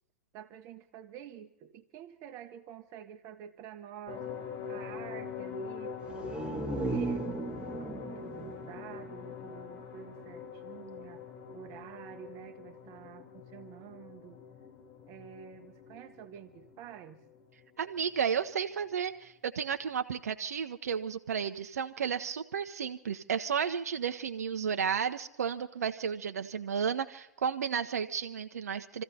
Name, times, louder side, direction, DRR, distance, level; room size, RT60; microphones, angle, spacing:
voice 1, 0.3-4.3 4.7-11.2 11.5-14.4 15.1-17.2, right 8 dB, 40° right, 7 dB, 1.0 m, -48 dB
sound 1, 4.1-18.2 18.5-18.6 18.9-19.0, left 7 dB, 40° left, 3.5 m, -44 dB
sound 2, 6.0-9.8 10.1-10.2, right 3 dB, 10° right, 1.2 m, -37 dB
voice 2, 17.8-29.0, right 7 dB, 75° right, 7 dB, 0.7 m, -33 dB
28.0 x 15.0 x 2.8 m, 0.88 s
hypercardioid pair, 105°, 8 cm